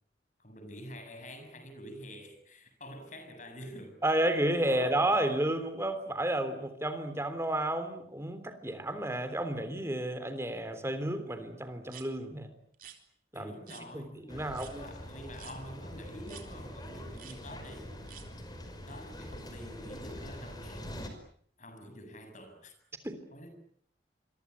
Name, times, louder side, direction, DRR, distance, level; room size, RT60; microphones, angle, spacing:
voice 1, 0.4-4.0 4.6-5.0 13.3-18.0 18.9-20.8 21.6-22.7 23.3-23.5, equal, 45° left, 8 dB, 7.5 m, -47 dB
voice 2, 4.0-12.5 13.3-13.5 13.9-14.9 23.0-23.2, right 1 dB, 15° right, 10 dB, 3.3 m, -31 dB
sound 1, 11.9-12.1 12.7-13.0 13.7-13.8 14.5-14.7 15.4-15.6 16.3-16.5 17.1-17.4 18.1-18.3, right 10 dB, 50° right, 4.0 m, -49 dB
sound 2, 14.3-21.1, equal, 20° left, 5.3 m, -44 dB
27.5 x 23.5 x 8.3 m, 0.62 s
head